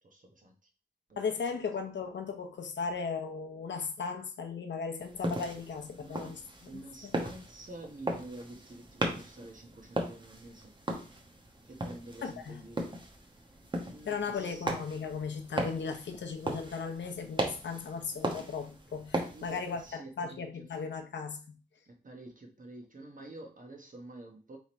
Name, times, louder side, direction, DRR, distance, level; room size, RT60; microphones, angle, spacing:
voice 1, 0.0-0.7 1.1-1.4 6.0-6.4 6.7-10.8 11.6-12.9 13.3-14.7 19.2-20.7 21.8-24.6, right 2 dB, 45° right, 1.1 m, -49 dB
voice 2, 1.2-7.2 12.2-12.6 14.1-19.8 20.2-21.4, left 5 dB, 80° left, 0.7 m, -37 dB
sound 1, 5.0-19.9, right 1 dB, 25° right, 1.0 m, -38 dB
3.5 x 3.1 x 4.2 m
wide cardioid pair, 80°, 18 cm